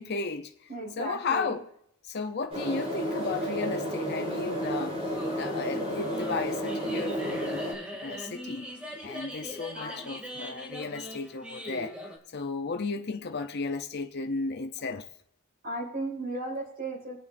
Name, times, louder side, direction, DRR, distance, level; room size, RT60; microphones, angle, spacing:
voice 1, 0.0-0.5 1.0-1.7 2.0-5.0 5.4-7.6 8.0-8.7 9.0-11.9 12.3-15.0, left 4 dB, 50° left, 0.6 m, -34 dB
voice 2, 0.7-1.5 9.7-10.0 15.6-17.2, right 1 dB, 45° right, 5.5 m, -35 dB
sound 1, 2.5-7.7, equal, 30° right, 3.9 m, -32 dB
sound 2, 5.1-12.2, equal, 5° right, 2.4 m, -41 dB
25.5 x 8.5 x 2.6 m
head